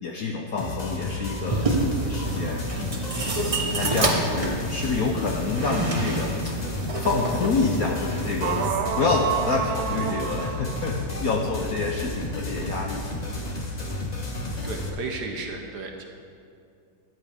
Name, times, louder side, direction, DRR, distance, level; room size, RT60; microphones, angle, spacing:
voice 1, 0.0-2.6 3.6-6.6 7.0-13.0, left 4 dB, 65° left, 1 dB, 0.9 m, -28 dB
sound 1, 0.6-14.9, left 2 dB, 40° left, 0.6 m, -32 dB
sound 2, 1.5-8.7, right 2 dB, 40° right, 0.4 m, -29 dB
sound 3, 8.4-14.9, right 8 dB, 75° right, 1.4 m, -32 dB
voice 2, 14.6-16.0, right 3 dB, 60° right, 3 dB, 1.3 m, -34 dB
14.0 x 11.0 x 3.5 m, 2.4 s
omnidirectional pair, 2.3 m